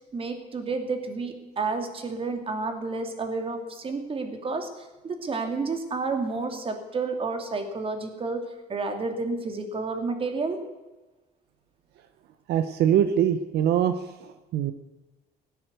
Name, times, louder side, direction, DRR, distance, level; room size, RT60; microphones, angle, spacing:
voice 1, 0.1-4.7 5.0-10.6, right 3 dB, 35° right, 6 dB, 2.6 m, -30 dB
voice 2, 12.5-14.0 14.5-14.7, right 9 dB, 75° right, 10 dB, 1.0 m, -22 dB
17.0 x 9.6 x 8.1 m, 1.1 s
cardioid pair, 110°, 17 cm